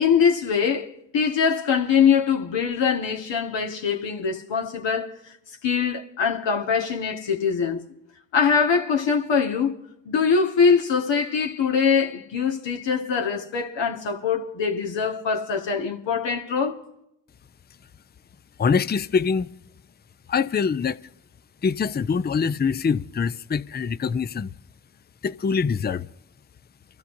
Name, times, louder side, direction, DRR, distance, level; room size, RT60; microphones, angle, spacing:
voice 1, 0.0-5.4 5.6-7.8 8.3-9.7 10.1-16.8, left 6 dB, 65° left, 1.7 m, -23 dB
voice 2, 18.6-19.5 20.3-21.0 21.6-24.5 25.2-26.1, left 6 dB, 20° left, 0.6 m, -24 dB
27.5 x 13.0 x 2.7 m
supercardioid pair, 50°, 46 cm